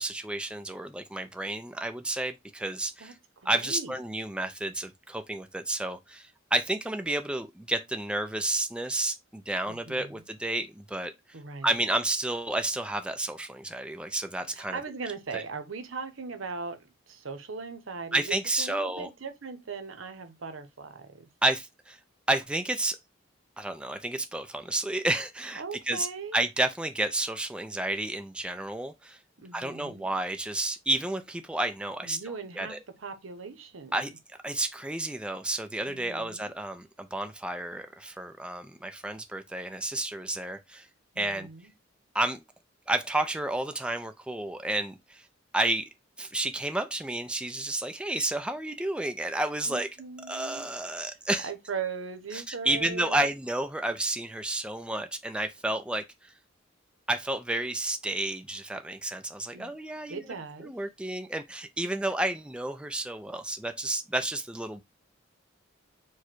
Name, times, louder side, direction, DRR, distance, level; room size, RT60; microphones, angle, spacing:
voice 1, 0.0-3.1 3.5-11.1 11.6-14.8 15.3-15.4 18.1-19.1 21.4-22.0 22.3-23.0 23.6-26.1 26.3-29.2 29.5-32.8 33.9-34.1 34.4-40.9 41.2-41.5 42.1-42.4 42.9-45.3 45.5-45.8 46.2-49.9 50.3-51.5 52.3-56.3 57.1-60.2 60.6-64.8, right 1 dB, 5° right, 0.4 m, -31 dB
voice 2, 3.0-4.0 9.7-10.2 11.3-11.8 14.5-21.3 25.6-26.4 29.4-30.1 32.0-32.7 33.0-34.0 35.8-36.5 41.1-41.7 49.7-50.7 51.4-53.3 59.5-59.7 60.1-60.7, right 5 dB, 85° right, 0.8 m, -39 dB
4.7 x 2.2 x 4.4 m
head